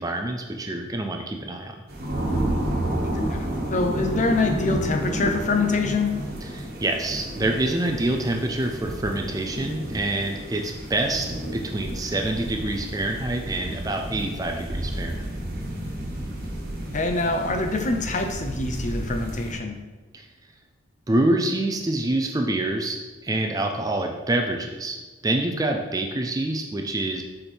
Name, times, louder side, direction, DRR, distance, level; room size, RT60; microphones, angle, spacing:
voice 1, 0.0-1.8 6.4-11.3 11.5-15.4 20.1-20.3 21.1-25.0 25.2-27.2, right 2 dB, 20° right, 3 dB, 0.4 m, -26 dB
sound 1, 1.9-19.5, right 1 dB, 50° right, 1.2 m, -31 dB
voice 2, 3.7-6.1 16.9-19.8, left 3 dB, 40° left, 5 dB, 0.5 m, -25 dB
5.0 x 4.4 x 4.4 m, 1.2 s
head